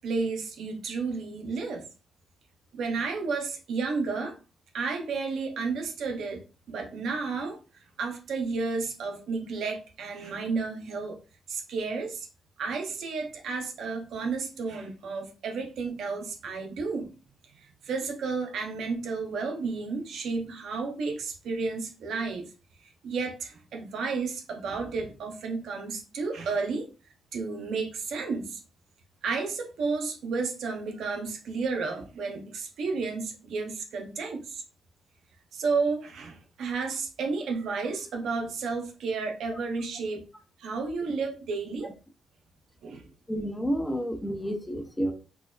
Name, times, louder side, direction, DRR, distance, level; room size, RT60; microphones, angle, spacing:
voice 1, 0.0-1.8 2.7-4.3 4.7-7.6 8.0-11.2 11.5-12.3 12.6-17.1 17.6-22.5 23.0-26.9 27.3-28.6 29.2-34.6 35.5-40.3 40.6-41.9 42.8-43.0, right 4 dB, 75° right, 0.6 m, -32 dB
voice 2, 43.3-45.1, equal, 10° left, 0.7 m, -30 dB
4.4 x 2.2 x 2.2 m
cardioid pair, 70°, 0 cm